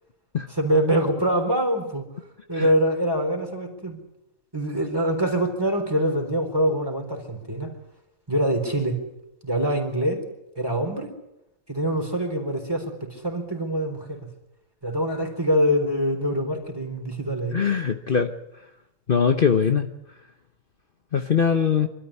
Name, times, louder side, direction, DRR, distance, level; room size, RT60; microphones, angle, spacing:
voice 1, 0.5-2.1 2.5-4.0 4.5-7.7 8.3-9.0 9.4-10.2 10.6-11.1 11.7-14.2 14.8-17.6, equal, 20° right, 4 dB, 4.1 m, -24 dB
voice 2, 17.5-18.3 19.1-19.9 21.1-21.9, left 6 dB, 45° left, 6 dB, 1.1 m, -21 dB
25.5 x 13.5 x 10.0 m, 0.86 s
omnidirectional pair, 1.3 m